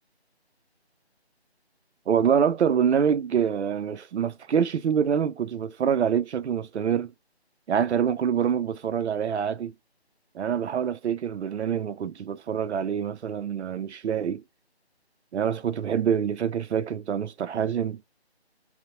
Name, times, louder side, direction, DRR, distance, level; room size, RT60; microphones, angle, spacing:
voice 1, 2.1-7.1 7.7-9.7 10.3-14.4 15.3-18.0, right 8 dB, 85° right, 0.5 m, -25 dB
2.6 x 2.0 x 2.8 m
figure-of-eight pair, 170°, 33 cm